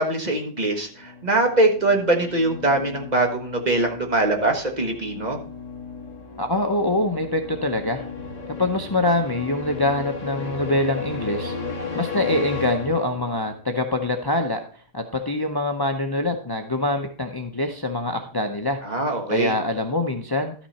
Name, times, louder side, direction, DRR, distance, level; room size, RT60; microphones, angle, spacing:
voice 1, 0.0-5.4 18.8-19.5, right 2 dB, 25° right, 2 dB, 1.4 m, -22 dB
sound 1, 0.9-13.5, left 4 dB, 20° left, 1.8 m, -35 dB
voice 2, 6.4-8.1 8.6-11.5 11.9-14.6 14.9-19.0 19.3-20.5, left 2 dB, 40° left, 5 dB, 0.3 m, -24 dB
12.5 x 6.0 x 4.2 m, 0.41 s
omnidirectional pair, 1.8 m